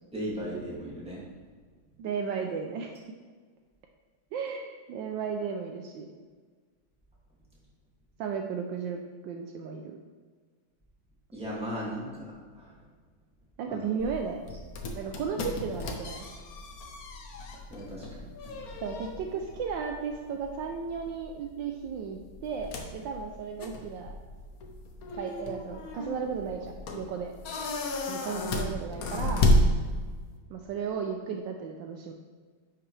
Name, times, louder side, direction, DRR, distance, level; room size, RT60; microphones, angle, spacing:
voice 1, 0.1-1.3 11.3-12.8 13.7-13.8 17.7-18.8, equal, 5° right, -6 dB, 2.0 m, -37 dB
voice 2, 2.0-3.0 4.3-6.1 8.2-10.0 13.6-14.4 14.9-16.2 18.8-24.1 25.1-27.3 28.1-29.5 30.5-32.1, right 6 dB, 75° right, 3 dB, 1.3 m, -34 dB
sound 1, 14.0-30.4, left 1 dB, 60° left, 1.2 m, -32 dB
9.9 x 5.9 x 3.3 m, 1.5 s
omnidirectional pair, 2.2 m